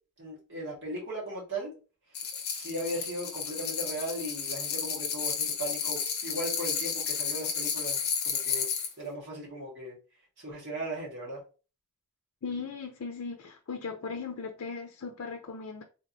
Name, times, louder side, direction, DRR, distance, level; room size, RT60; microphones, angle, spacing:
voice 1, 0.2-1.7 2.5-8.7 9.0-10.0 10.4-11.4, right 1 dB, 55° right, 1.7 m, -37 dB
sound 1, 2.1-8.9, left 6 dB, 45° left, 0.8 m, -32 dB
voice 2, 12.4-15.8, left 5 dB, 75° left, 0.5 m, -38 dB
3.7 x 3.0 x 2.6 m
head